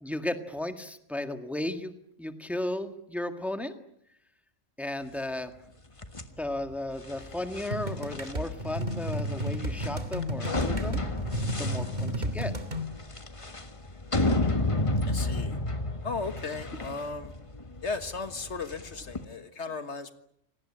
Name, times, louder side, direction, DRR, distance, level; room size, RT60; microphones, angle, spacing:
voice 1, 0.0-3.8 4.8-5.5 6.4-11.0 11.6-12.5, left 1 dB, ahead, 7 dB, 1.7 m, -34 dB
sound 1, 6.0-19.2, left 2 dB, 25° left, 1.5 m, -32 dB
sound 2, 7.7-12.9, equal, 35° right, 2.5 m, -32 dB
voice 2, 15.1-15.6 16.0-17.3 17.8-20.1, left 4 dB, 65° left, 10 dB, 1.8 m, -35 dB
27.0 x 19.0 x 10.0 m, 0.75 s
omnidirectional pair, 1.3 m